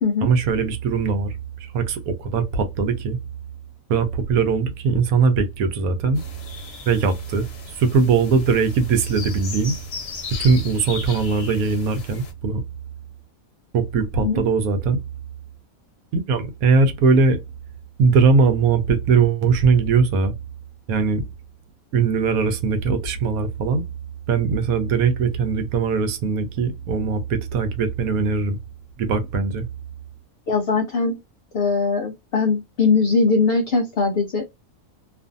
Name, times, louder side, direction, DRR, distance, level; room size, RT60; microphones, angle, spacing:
voice 1, 0.2-3.2 3.9-6.2 6.9-7.5 7.8-9.8 10.4-12.6 13.7-15.0 16.1-17.4 18.0-20.4 20.9-21.3 21.9-23.9 24.3-28.6 29.0-29.7, right 5 dB, 80° right, 1.1 m, -20 dB
sound 1, 6.1-12.3, left 4 dB, 55° left, 0.9 m, -36 dB
voice 2, 30.5-31.2 31.5-34.4, left 4 dB, 75° left, 0.5 m, -20 dB
2.5 x 2.5 x 2.5 m
omnidirectional pair, 1.5 m